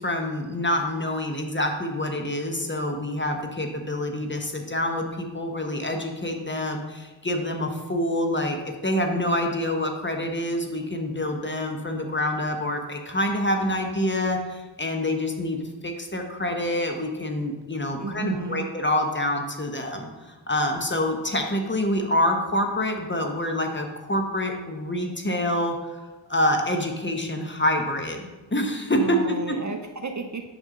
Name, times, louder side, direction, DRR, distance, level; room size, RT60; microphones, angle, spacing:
voice 1, 0.0-8.6 8.8-26.0 26.3-28.2 28.5-29.2 29.5-29.6, left 1 dB, 25° left, 3 dB, 0.9 m, -26 dB
voice 2, 18.0-18.7 29.0-30.4, right 4 dB, 40° right, 5 dB, 0.5 m, -32 dB
6.5 x 5.4 x 3.7 m, 1.2 s
wide cardioid pair, 65°, 46 cm